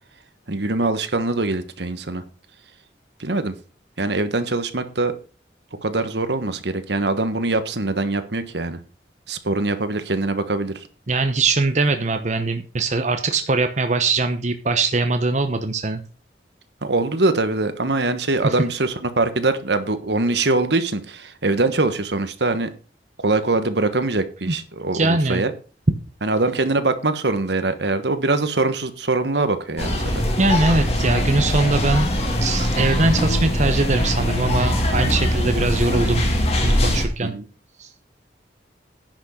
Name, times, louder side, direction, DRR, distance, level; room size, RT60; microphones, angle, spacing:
voice 1, 0.5-2.2 3.2-3.6 4.0-5.1 5.8-8.8 9.3-10.7 16.8-22.7 23.2-25.5 26.2-30.0 37.2-37.4, right 2 dB, 70° right, 10 dB, 1.3 m, -23 dB
voice 2, 11.1-16.0 18.4-18.5 24.5-24.6 24.9-25.4 30.1-32.1 32.4-36.2 36.6-37.3 37.8-37.9, right 3 dB, 40° right, 7 dB, 0.9 m, -21 dB
sound 1, 29.8-37.0, equal, 35° left, 2.7 m, -21 dB
10.5 x 6.3 x 6.4 m, 0.36 s
head